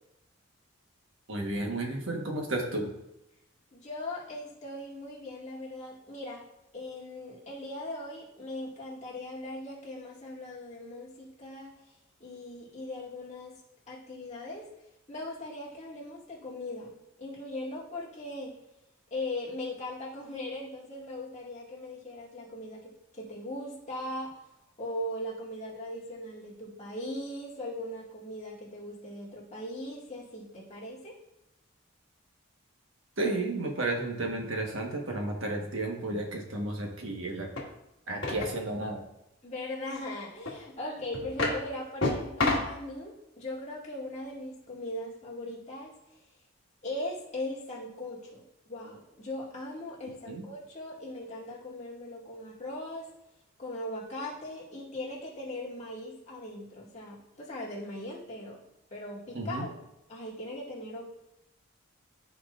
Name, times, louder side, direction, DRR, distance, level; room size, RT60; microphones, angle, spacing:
voice 1, 1.3-2.9 33.2-37.5 38.1-39.0 50.3-50.5 59.3-59.6, right 2 dB, 70° right, 1 dB, 1.3 m, -32 dB
voice 2, 3.7-6.4 6.7-13.5 13.9-14.7 15.1-16.9 17.2-18.6 19.1-24.3 24.8-31.1 39.4-46.2 46.8-53.1 53.6-58.6 58.9-59.8 60.1-61.0, left 1 dB, 30° left, -6 dB, 2.0 m, -39 dB
sound 1, 37.5-37.6 38.2-38.6 40.4-40.5 41.1-41.6 42.0-42.8, left 2 dB, 60° left, 1.7 m, -29 dB
13.0 x 4.7 x 2.5 m, 0.88 s
head